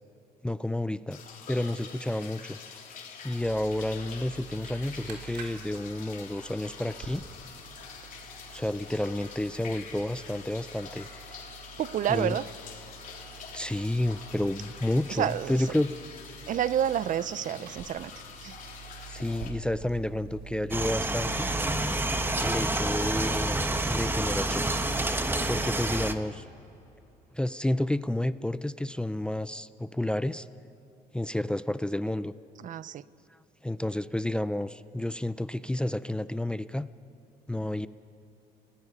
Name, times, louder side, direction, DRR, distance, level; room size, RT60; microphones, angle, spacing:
voice 1, 0.4-1.2 1.5-2.6 3.2-7.2 8.5-11.3 12.1-12.4 13.5-15.9 19.1-21.5 22.4-23.6 23.9-24.7 25.5-26.4 27.3-30.5 31.1-32.3 33.6-36.9 37.5-37.9, left 1 dB, 5° left, 14 dB, 0.5 m, -30 dB
sound 1, 1.1-19.5, left 6 dB, 50° left, 3.4 m, -46 dB
sound 2, 3.4-21.6, right 5 dB, 65° right, 3.5 m, -48 dB
voice 2, 11.8-12.5 15.1-15.6 16.5-18.1 18.4-18.6 32.6-33.0, right 10 dB, 50° right, 17 dB, 0.6 m, -29 dB
sound 3, 20.7-26.1, right 2 dB, 10° right, 1.2 m, -28 dB
29.5 x 19.0 x 5.5 m, 2.9 s
cardioid pair, 110°, 17 cm